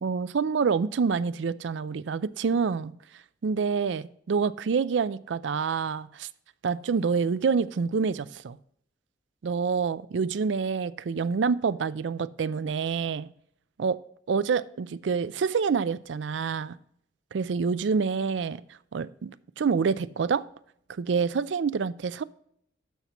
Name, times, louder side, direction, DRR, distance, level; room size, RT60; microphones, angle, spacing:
voice 1, 0.0-2.9 3.4-6.3 6.6-8.6 9.4-13.3 13.8-14.0 14.3-16.8 17.3-18.6 18.9-20.4 20.9-22.2, right 5 dB, 85° right, 0.4 m, -27 dB
12.5 x 5.7 x 3.0 m
head